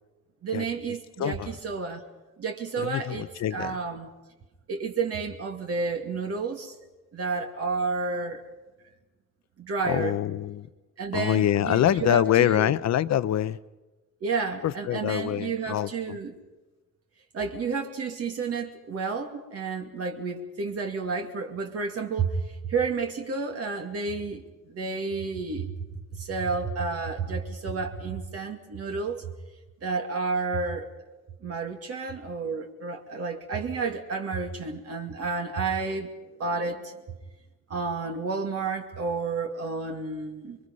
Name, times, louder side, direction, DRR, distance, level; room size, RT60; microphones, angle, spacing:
voice 1, 0.4-2.0 2.4-4.1 4.7-6.8 7.1-8.4 9.6-10.2 11.0-12.7 14.2-16.4 17.3-29.3 29.8-30.9 31.4-36.1 36.4-37.0 37.7-40.6, right 4 dB, 50° right, 2.5 m, -31 dB
voice 2, 2.8-3.7 9.8-10.7 11.1-13.6 14.6-15.9, left 11 dB, 60° left, 0.9 m, -25 dB
28.5 x 23.5 x 5.5 m
cardioid pair, 155°, 31 cm